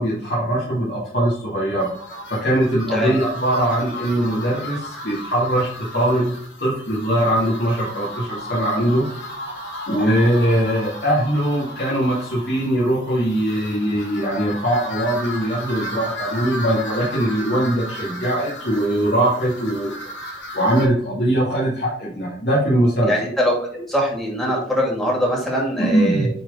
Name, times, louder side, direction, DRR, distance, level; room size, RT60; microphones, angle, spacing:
voice 1, 0.0-1.9 2.4-9.0 9.9-19.9 20.5-23.1 25.8-26.3, right 1 dB, 60° left, -7 dB, 2.3 m, -21 dB
sound 1, 1.8-20.9, equal, 85° left, 2.7 m, -34 dB
voice 2, 2.9-3.2 10.0-10.2 23.1-26.3, equal, ahead, -3 dB, 2.3 m, -22 dB
9.1 x 4.1 x 3.7 m, 0.63 s
head